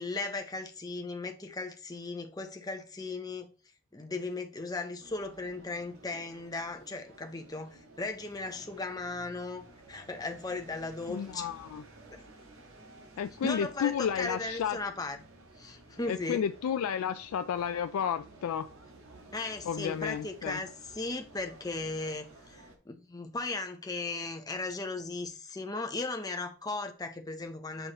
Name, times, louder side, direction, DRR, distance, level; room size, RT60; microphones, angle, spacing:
voice 1, 0.0-3.5 3.9-11.5 12.1-12.2 13.4-15.2 15.6-16.4 19.3-27.9, left 3 dB, 15° left, 0.6 m, -37 dB
sound 1, 5.0-22.8, right 2 dB, 70° right, 1.3 m, -54 dB
voice 2, 11.1-11.8 13.2-14.8 16.1-18.7 19.6-20.6, left 8 dB, 85° left, 0.3 m, -32 dB
7.8 x 4.6 x 2.9 m
head